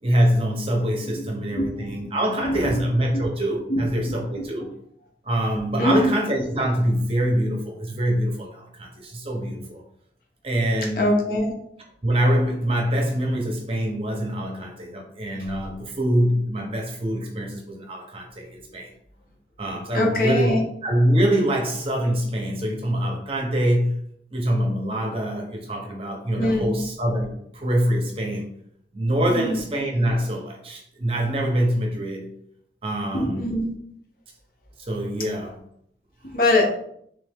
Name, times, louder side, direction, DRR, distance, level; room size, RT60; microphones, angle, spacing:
voice 1, 0.0-4.7 5.2-9.8 10.4-11.1 12.0-18.9 19.6-24.1 24.3-28.5 28.9-32.2 32.8-33.5 34.9-35.6, equal, 30° right, 1 dB, 0.8 m, -24 dB
voice 2, 1.2-1.9 2.4-2.8 3.1-3.2 3.7-4.2 5.8-6.1 11.0-11.6 19.9-20.6 26.4-26.8 29.3-29.6 33.1-33.7 36.2-36.8, left 1 dB, 50° left, 0 dB, 1.0 m, -23 dB
3.4 x 3.3 x 3.5 m, 0.70 s
head